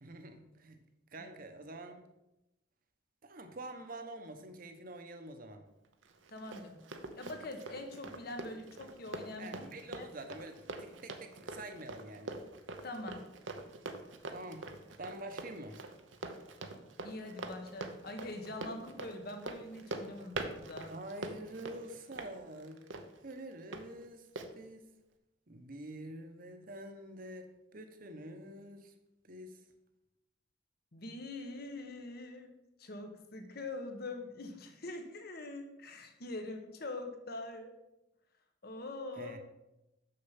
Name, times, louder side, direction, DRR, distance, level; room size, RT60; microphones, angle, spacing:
voice 1, 0.0-0.8 1.1-2.0 3.2-5.6 9.4-12.4 14.3-14.7 15.0-15.9 20.9-22.9 23.2-24.3 24.5-24.9 25.5-28.9 29.2-29.6 39.2-39.4, right 1 dB, 50° right, 7 dB, 1.0 m, -47 dB
Run, 6.0-23.8 24.4-24.5, right 3 dB, 85° right, 0.9 m, -44 dB
voice 2, 6.3-6.8 7.2-9.6 9.9-10.1 12.8-13.2 17.0-20.9 30.9-32.5 32.8-37.7 38.6-39.4, left 2 dB, 55° left, 5 dB, 1.2 m, -43 dB
6.7 x 6.6 x 5.8 m, 0.93 s
head